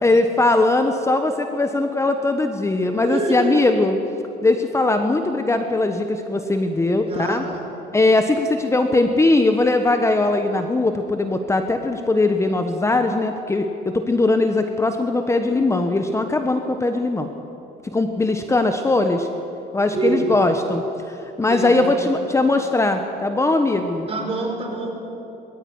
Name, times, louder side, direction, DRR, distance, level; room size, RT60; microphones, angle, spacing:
voice 1, 0.0-4.0 4.4-7.4 7.9-17.3 17.8-19.3 19.7-20.8 21.1-24.1, left 2 dB, 15° left, 6 dB, 1.2 m, -20 dB
voice 2, 3.0-3.5 7.0-7.7 19.9-20.4 21.5-21.8 24.1-24.9, right 4 dB, 35° right, 1 dB, 5.1 m, -26 dB
20.5 x 14.0 x 9.6 m, 3.0 s
cardioid pair, 110°, 17 cm